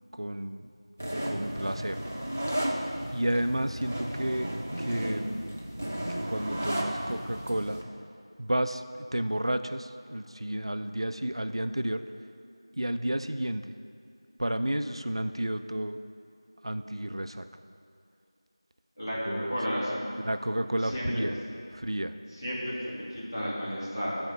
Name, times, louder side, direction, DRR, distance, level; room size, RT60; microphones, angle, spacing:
voice 1, 0.1-0.7 1.2-2.0 3.1-4.5 4.8-5.5 6.1-7.8 8.4-12.0 12.7-13.6 14.4-16.0 16.6-17.5 19.2-19.6 20.2-21.3 21.7-22.1, right 1 dB, 75° right, 10 dB, 0.3 m, -31 dB
sound 1, 1.0-7.8, equal, 20° left, 0.3 m, -34 dB
voice 2, 19.0-20.1 20.8-21.3 22.3-24.2, equal, 40° left, -7 dB, 1.7 m, -33 dB
8.1 x 4.3 x 5.3 m, 2.4 s
figure-of-eight pair, 180°, 3 cm